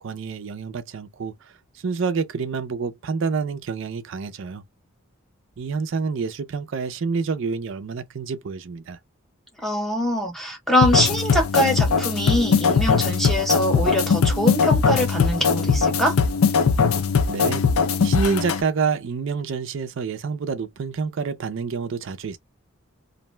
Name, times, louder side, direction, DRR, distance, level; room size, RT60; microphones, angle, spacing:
voice 1, 0.0-1.5 1.8-4.6 5.6-9.0 17.3-17.7 18.0-22.4, right 5 dB, 60° right, 0.4 m, -28 dB
voice 2, 9.6-16.2, equal, ahead, 0.7 m, -23 dB
sound 1, 10.8-18.6, left 5 dB, 75° left, 0.5 m, -20 dB
2.5 x 2.1 x 3.0 m
head